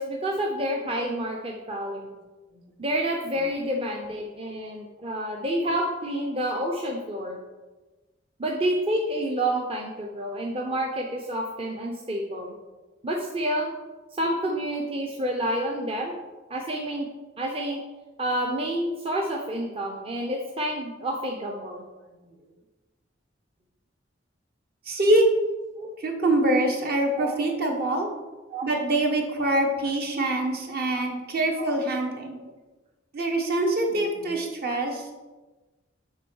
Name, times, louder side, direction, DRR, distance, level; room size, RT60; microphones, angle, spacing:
voice 1, 0.0-2.1 2.8-7.4 8.4-12.5 13.0-13.7 14.2-16.2 16.5-17.1 17.4-17.8 18.2-21.8 25.8-25.9 27.2-27.4 28.5-28.6 31.0-31.1 31.5-31.8, right 1 dB, 30° right, 0 dB, 0.7 m, -29 dB
voice 2, 24.8-25.2 26.0-28.1 28.6-32.4 33.1-35.1, right 1 dB, 55° right, 2 dB, 1.4 m, -24 dB
7.4 x 3.8 x 6.3 m, 1.2 s
head